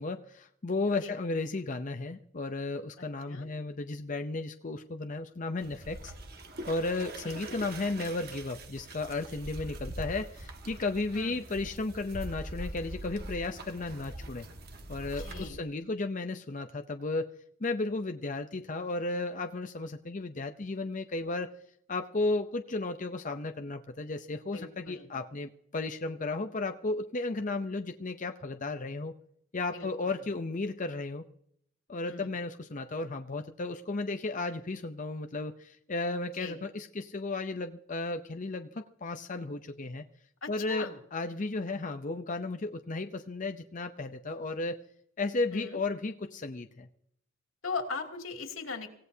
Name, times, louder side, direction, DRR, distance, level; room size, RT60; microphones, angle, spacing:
voice 1, 0.0-6.1 6.7-14.5 14.9-17.3 17.6-21.5 21.9-29.1 29.5-31.2 31.9-40.0 40.5-44.8 45.2-46.9, left 3 dB, 40° left, 6 dB, 0.7 m, -34 dB
voice 2, 3.0-3.5 7.5-7.6 11.1-11.4 15.2-15.6 24.5-25.1 29.7-30.1 32.0-32.3 36.4-36.6 40.4-41.0 45.5-45.8 47.6-48.9, left 4 dB, 80° left, 2 dB, 2.8 m, -39 dB
sound 1, 5.6-15.5, right 1 dB, 50° right, 1.7 m, -43 dB
25.5 x 17.0 x 2.8 m, 0.71 s
head